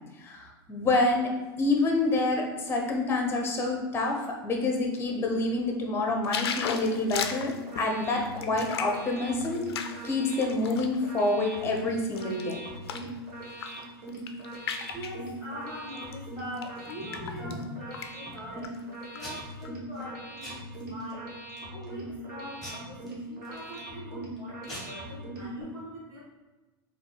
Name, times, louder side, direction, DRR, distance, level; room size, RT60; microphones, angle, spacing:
voice 1, 0.2-1.3 1.6-7.5 7.8-9.6 10.0-12.6, left 2 dB, 20° left, 1 dB, 0.8 m, -27 dB
sound 1, 6.2-11.0 11.5-13.1 13.5-13.8 14.1-15.2 16.0-16.1 16.6-17.6 17.9-18.1 18.4-19.2 19.6-19.7, left 7 dB, 80° left, 0.4 m, -36 dB
sound 2, 7.1-25.6, right 1 dB, 55° right, 1.3 m, -41 dB
voice 2, 14.9-18.7 19.0-21.3 21.7-26.2, equal, 25° right, -10 dB, 1.3 m, -43 dB
Packing tape duct tape / Tearing, 16.5-17.8 18.3-18.8 19.2-19.6 19.9-20.1 20.4-21.1 21.6-21.9 22.6-23.9 24.4-24.5 24.6-24.8, left 1 dB, ahead, 1.3 m, -44 dB
3.9 x 2.4 x 3.3 m, 1.2 s
hypercardioid pair, 110°, 13 cm